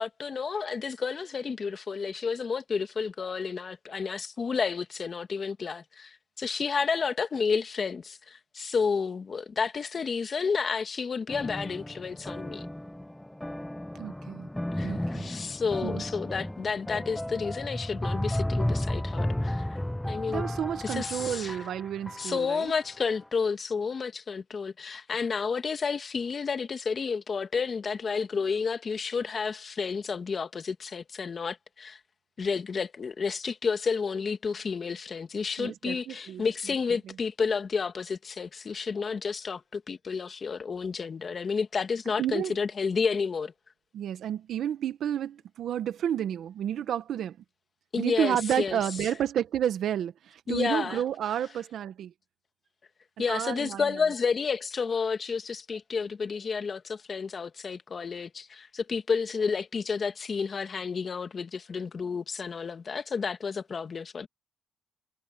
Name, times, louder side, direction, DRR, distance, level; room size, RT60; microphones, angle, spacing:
voice 1, 0.0-12.7 14.8-20.4 20.8-21.6 22.2-32.0 32.4-43.5 47.9-48.8 49.1-49.2 50.5-51.0 53.2-64.3, left 5 dB, 40° left, 1.8 m, -31 dB
sound 1, 11.3-22.7, left 1 dB, 5° left, 0.5 m, -33 dB
voice 2, 13.9-14.5 14.8-15.3 15.8-16.0 20.3-22.7 35.6-36.4 42.2-42.6 43.9-47.4 48.0-52.1 53.2-54.0, right 10 dB, 70° right, 1.5 m, -31 dB
cardioid pair, 90°, 0 cm